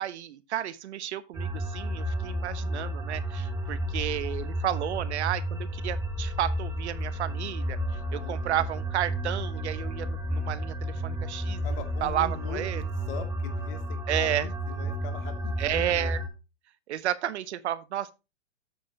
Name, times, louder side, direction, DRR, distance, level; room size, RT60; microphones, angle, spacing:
voice 1, 0.0-7.8 8.1-11.6 12.0-12.8 14.1-14.5 15.6-16.2 16.9-18.1, right 11 dB, 60° right, 0.9 m, -32 dB
sound 1, 1.3-16.3, equal, 10° right, 1.9 m, -32 dB
voice 2, 8.2-8.7 11.6-16.2, left 8 dB, 50° left, 2.5 m, -42 dB
8.5 x 7.6 x 2.8 m
hypercardioid pair, 135°, 37 cm